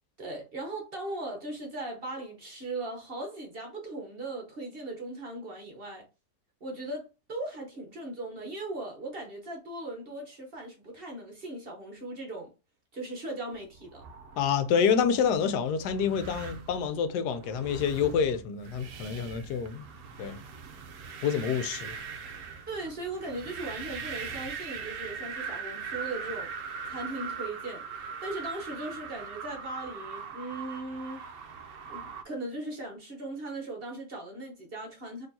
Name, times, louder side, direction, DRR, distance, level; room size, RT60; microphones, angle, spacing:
voice 1, 0.2-6.0 6.6-12.5 12.9-14.0 22.7-26.5 26.9-31.5 31.9-35.3, right 2 dB, 40° right, 1.0 m, -38 dB
sound 1, 13.7-32.2, right 6 dB, 65° right, 0.8 m, -41 dB
voice 2, 14.4-19.8 20.2-20.4 21.2-22.0, left 7 dB, 75° left, 1.2 m, -27 dB
4.3 x 3.1 x 2.7 m
omnidirectional pair, 1.8 m